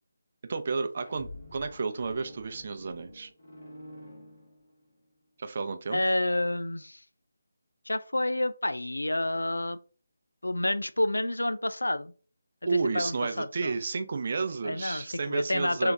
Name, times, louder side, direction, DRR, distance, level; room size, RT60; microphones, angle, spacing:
voice 1, 0.4-3.3 5.4-6.0 12.7-15.9, right 4 dB, 45° right, 8 dB, 0.5 m, -32 dB
sound 1, 0.8-5.0, left 1 dB, 60° left, 2.0 m, -48 dB
voice 2, 5.9-7.0 7.9-9.8 10.4-12.1 12.7-13.7 14.6-15.9, left 1 dB, 85° left, 12 dB, 0.4 m, -29 dB
3.5 x 2.9 x 3.5 m, 0.39 s
figure-of-eight pair, 155°, 0 cm